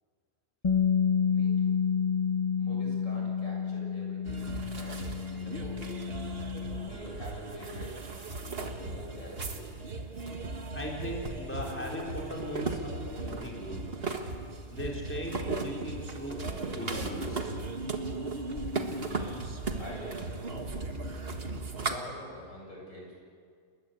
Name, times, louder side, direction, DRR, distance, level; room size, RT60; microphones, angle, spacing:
Bass guitar, 0.6-6.9, left 7 dB, 30° left, 0.6 m, -29 dB
voice 1, 1.3-1.7 2.6-5.7 6.8-7.9 8.5-9.8 19.0-19.4 19.8-20.7 21.8-23.2, left 1 dB, 85° left, -1 dB, 7.9 m, -46 dB
sound 1, 4.2-22.0, right 3 dB, 35° right, 1.9 m, -36 dB
voice 2, 10.7-13.8 14.7-16.4 16.7-17.5, equal, 5° left, -2 dB, 4.6 m, -38 dB
29.0 x 21.5 x 8.4 m, 2.1 s
omnidirectional pair, 1.9 m